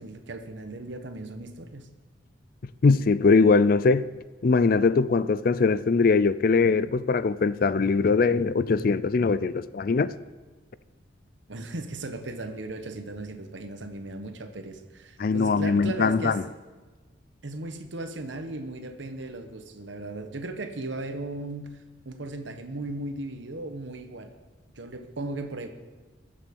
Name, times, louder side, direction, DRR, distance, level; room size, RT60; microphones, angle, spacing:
voice 1, 0.0-1.9 11.5-16.4 17.4-21.7 22.0-24.3 24.7-25.7, right 2 dB, 70° right, 1.2 m, -36 dB
voice 2, 2.8-4.1 4.4-10.1 15.2-16.4, left 4 dB, 50° left, 0.4 m, -21 dB
21.0 x 7.3 x 5.4 m
head